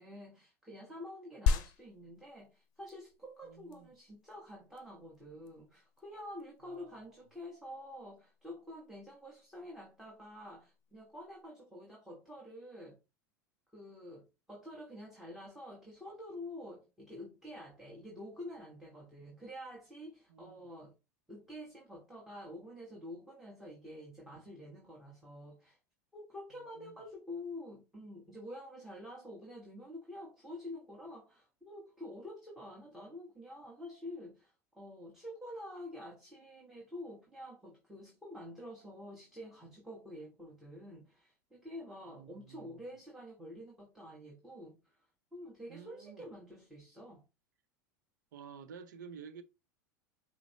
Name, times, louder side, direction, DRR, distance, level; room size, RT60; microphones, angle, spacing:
voice 1, 0.0-13.0 13.7-20.9 21.3-25.8 26.1-45.1 45.3-47.2, left 1 dB, 5° right, 1.4 m, -48 dB
sound 1, 1.5-11.4, left 6 dB, 50° left, 0.7 m, -40 dB
voice 2, 3.4-3.9 6.6-7.1 20.3-20.7 26.5-27.0 42.1-42.8 45.7-46.3 48.3-49.4, right 7 dB, 70° right, 0.6 m, -52 dB
6.0 x 2.1 x 4.1 m
figure-of-eight pair, 85°, 10 cm